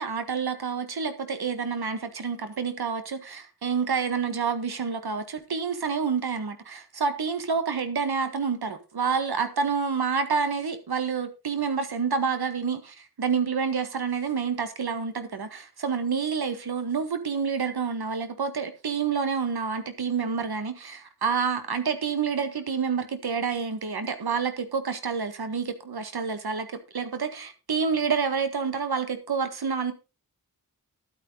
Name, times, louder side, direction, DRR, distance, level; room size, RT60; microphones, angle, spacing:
voice 1, 0.0-26.7 26.9-29.9, right 5 dB, 85° right, 9 dB, 1.7 m, -28 dB
11.5 x 9.2 x 4.0 m, 0.29 s
cardioid pair, 45°, 37 cm